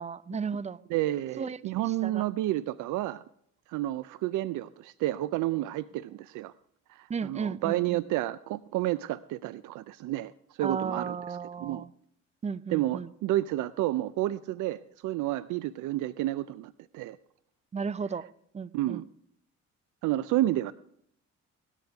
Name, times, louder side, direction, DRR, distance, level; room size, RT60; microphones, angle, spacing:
voice 1, 0.0-0.8 1.4-2.3 7.1-8.0 10.6-11.9 12.4-13.1 17.7-18.3 18.5-19.0, right 6 dB, 25° right, 19 dB, 0.4 m, -35 dB
voice 2, 0.9-3.2 3.7-6.5 6.9-10.3 10.6-11.2 11.6-11.8 12.7-17.2 18.7-19.0 20.0-20.7, right 15 dB, 85° right, 16 dB, 0.4 m, -30 dB
18.0 x 13.0 x 3.5 m, 0.70 s
cardioid pair, 90°, 30 cm